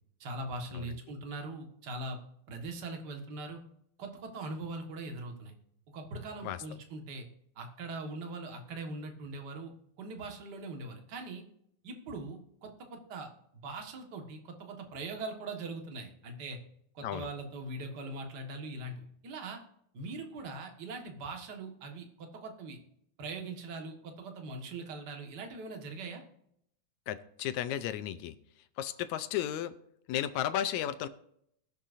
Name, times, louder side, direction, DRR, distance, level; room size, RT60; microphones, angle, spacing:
voice 1, 0.2-2.2 2.5-3.6 4.0-5.5 5.9-7.3 7.5-9.7 10.0-11.4 11.8-13.3 13.5-16.6 16.9-19.6 19.9-22.8 23.2-26.2, right 2 dB, 40° right, 4 dB, 1.7 m, -41 dB
voice 2, 27.1-28.4 28.8-29.7 30.1-31.1, left 11 dB, 80° left, 12 dB, 1.9 m, -34 dB
21.0 x 7.3 x 2.6 m, 0.72 s
omnidirectional pair, 3.5 m